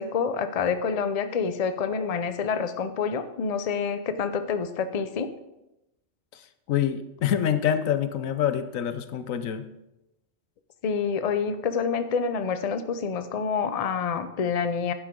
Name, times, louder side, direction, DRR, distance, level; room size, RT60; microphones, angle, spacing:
voice 1, 0.0-5.3 10.8-14.9, left 6 dB, 40° left, 10 dB, 0.6 m, -27 dB
voice 2, 6.3-9.7, left 9 dB, 90° left, 11 dB, 1.2 m, -26 dB
11.0 x 9.7 x 3.7 m, 0.92 s
omnidirectional pair, 1.3 m